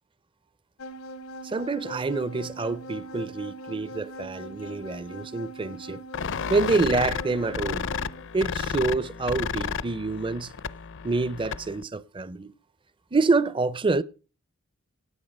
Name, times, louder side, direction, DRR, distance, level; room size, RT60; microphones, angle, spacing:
sound 1, 0.8-8.3, equal, 85° left, 1.0 m, -41 dB
voice 1, 1.4-6.0 6.5-7.9 8.3-10.5 11.0-12.5 13.1-14.0, right 3 dB, 25° right, 0.5 m, -27 dB
sound 2, 6.1-11.8, left 6 dB, 60° left, 0.6 m, -32 dB
18.0 x 8.6 x 5.3 m
head